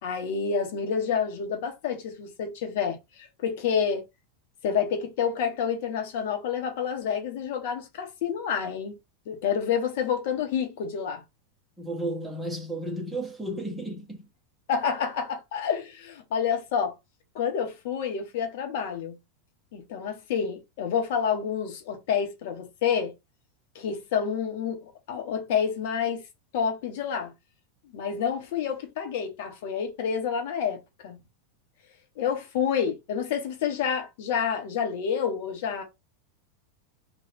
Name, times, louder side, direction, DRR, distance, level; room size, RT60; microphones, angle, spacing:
voice 1, 0.0-4.0 4.6-9.0 9.3-11.2 14.7-16.9 17.3-19.2 19.7-23.1 23.7-26.2 26.5-27.3 27.9-31.2 32.2-35.8, left 7 dB, 60° left, 1.2 m, -28 dB
voice 2, 11.8-14.3, right 1 dB, 5° right, 1.4 m, -33 dB
3.2 x 2.7 x 4.3 m
hypercardioid pair, 90°, 0 cm